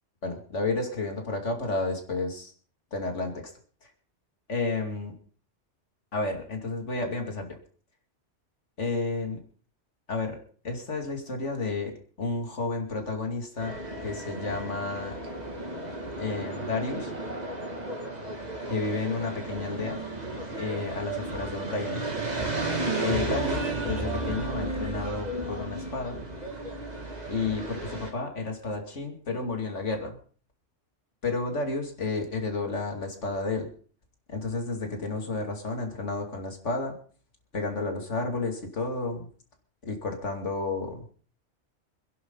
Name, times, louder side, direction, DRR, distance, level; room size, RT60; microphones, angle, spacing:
voice 1, 0.2-2.5 2.9-3.3 4.5-5.1 6.1-7.5 8.8-9.4 10.1-10.4 10.6-15.2 16.2-17.1 18.7-20.0 20.6-22.0 23.0-26.2 27.3-30.2 31.2-33.7 34.3-37.0 37.5-39.3 39.8-41.0, left 3 dB, 75° left, 3 dB, 2.9 m, -31 dB
sound 1, 13.6-28.1, right 2 dB, 35° right, 2.5 m, -33 dB
26.5 x 11.0 x 4.0 m, 0.43 s
omnidirectional pair, 1.2 m